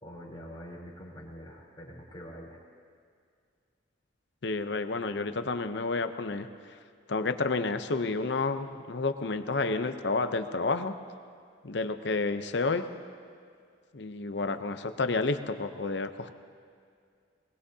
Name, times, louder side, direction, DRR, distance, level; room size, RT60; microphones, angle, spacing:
voice 1, 0.0-2.6, equal, 25° left, -5 dB, 3.5 m, -45 dB
voice 2, 4.4-6.5 7.1-11.0 11.6-12.8 13.9-16.3, left 3 dB, 65° left, 9 dB, 0.7 m, -30 dB
23.0 x 20.5 x 2.8 m, 2.2 s
head